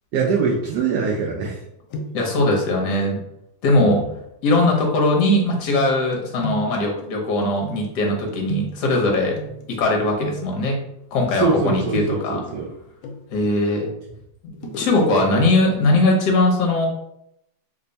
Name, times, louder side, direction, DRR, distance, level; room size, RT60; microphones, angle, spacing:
voice 1, 0.1-1.6 3.7-4.1 11.3-12.7 14.6-14.7 15.2-15.5, right 5 dB, 75° right, -3 dB, 0.9 m, -23 dB
sound 1, 1.1-1.6 1.9-2.4 3.8-4.0 5.7-9.9 10.2-10.7 11.7-13.5 14.5-15.2 15.6-15.7, equal, 80° left, 1.4 m, -35 dB
voice 2, 2.1-3.2 3.6-4.0 4.4-9.4 9.7-10.8 11.1-12.4 13.3-13.9 14.8-16.9, left 2 dB, 60° left, 0 dB, 1.3 m, -20 dB
3.4 x 2.2 x 3.9 m, 0.80 s
omnidirectional pair, 2.3 m